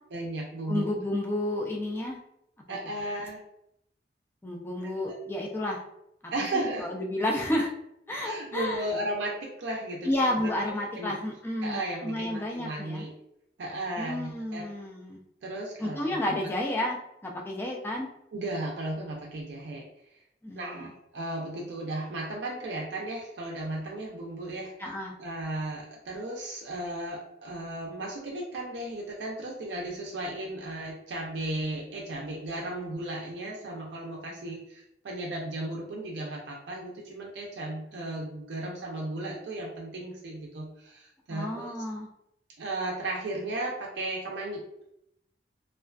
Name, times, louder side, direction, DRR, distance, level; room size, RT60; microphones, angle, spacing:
voice 1, 0.1-0.9 2.7-3.4 4.8-5.1 6.3-6.9 8.2-10.5 10.9-11.2 11.6-13.1 13.6-14.7 15.4-16.5 18.3-19.8 20.5-24.7 25.2-41.7 42.6-44.6, right 1 dB, 75° right, -2 dB, 0.4 m, -35 dB
voice 2, 0.7-2.2 4.4-5.8 6.5-7.7 8.1-8.9 10.0-13.0 14.0-15.2 15.8-17.0 17.2-18.1 20.4-20.9 24.8-25.1 41.3-42.1, left 1 dB, 10° left, -1 dB, 0.3 m, -31 dB
2.4 x 2.3 x 2.2 m, 0.80 s
head